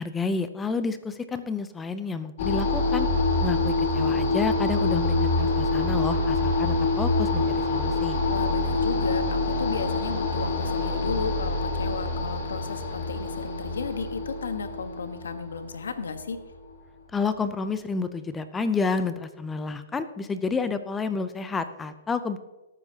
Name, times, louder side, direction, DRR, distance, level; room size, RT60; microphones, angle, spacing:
voice 1, 0.0-3.1 3.4-8.2 17.1-22.4, left 4 dB, 10° left, 11 dB, 0.5 m, -30 dB
sound 1, 2.4-16.5, left 3 dB, 60° left, 3.5 m, -26 dB
voice 2, 8.3-16.4, left 5 dB, 90° left, 9 dB, 1.2 m, -34 dB
18.0 x 8.9 x 2.8 m, 1.1 s
hypercardioid pair, 140°, 0 cm